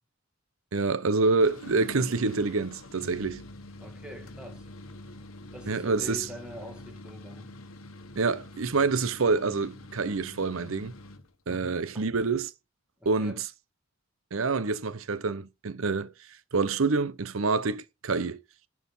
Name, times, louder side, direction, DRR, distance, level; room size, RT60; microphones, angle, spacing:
voice 1, 0.7-3.4 5.7-6.3 8.2-10.9 11.5-12.5 13.0-13.5 14.3-16.1 16.5-18.4, right 4 dB, 80° right, 0.7 m, -27 dB
sound 1, 1.3-11.3, left 2 dB, 85° left, 1.1 m, -45 dB
voice 2, 3.8-4.7 5.5-7.5 11.5-12.1 13.0-13.4, equal, 5° right, 1.7 m, -44 dB
11.0 x 4.8 x 5.5 m
head